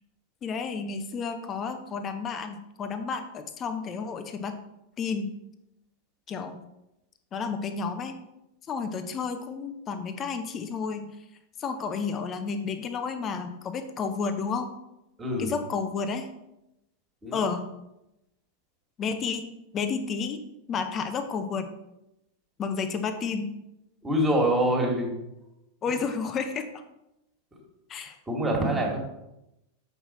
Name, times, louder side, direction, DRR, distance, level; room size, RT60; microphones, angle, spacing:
voice 1, 0.4-4.6 5.0-5.3 6.3-6.6 7.3-8.2 8.7-11.1 11.6-14.7 15.4-16.3 17.3-17.7 19.0-19.5 19.7-20.4 20.7-21.7 22.6-23.5 25.8-26.8 27.9-28.1, left 5 dB, 25° left, 8 dB, 0.7 m, -31 dB
voice 2, 15.2-15.5 17.2-17.4 24.0-25.1 27.5-27.6 28.2-29.0, right 1 dB, 15° right, 0 dB, 2.0 m, -25 dB
7.0 x 5.6 x 4.3 m, 0.89 s
figure-of-eight pair, 90°, 0 cm